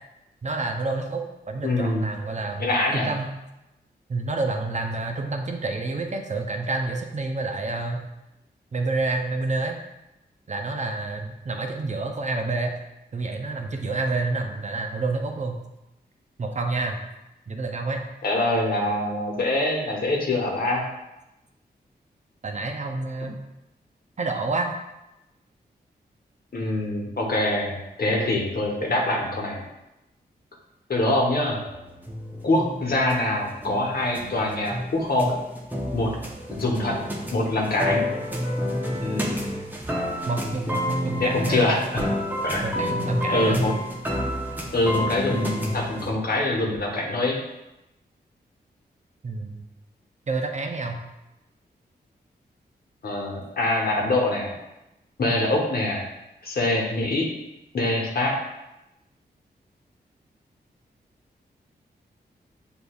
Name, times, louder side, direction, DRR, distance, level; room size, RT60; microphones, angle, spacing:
voice 1, 0.4-3.3 4.1-8.0 8.7-9.8 10.5-12.7 13.1-15.6 16.4-17.0 17.5-18.0 22.4-23.4 24.2-24.7 40.3-41.7 42.6-43.6 49.2-49.6 50.3-51.0, right 3 dB, 40° right, 4 dB, 0.6 m, -28 dB
voice 2, 1.6-2.1 2.6-3.1 18.2-20.8 26.5-29.6 30.9-31.6 32.4-35.4 35.9-36.1 36.6-37.0 37.3-38.0 39.0-39.4 41.2-41.8 42.4-42.8 43.3-43.7 44.7-47.4 53.0-54.5 55.2-56.1 56.4-57.3 57.7-58.3, left 2 dB, 60° left, -1 dB, 1.1 m, -24 dB
sound 1, 31.7-46.1, equal, 10° right, 0.8 m, -29 dB
6.6 x 2.6 x 2.3 m, 0.94 s
cardioid pair, 55°, 18 cm